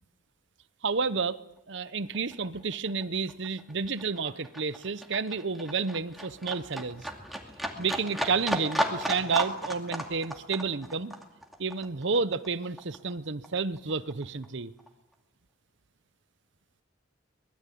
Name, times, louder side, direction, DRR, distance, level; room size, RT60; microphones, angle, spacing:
voice 1, 0.8-1.4 1.7-7.0 7.8-11.1 11.6-14.7, right 4 dB, 60° right, 0.8 m, -30 dB
Livestock farm animals working animals, 1.7-1.9 2.1-13.1 13.4-14.5 14.8-14.9, equal, ahead, 2.3 m, -35 dB
24.0 x 20.5 x 8.5 m
head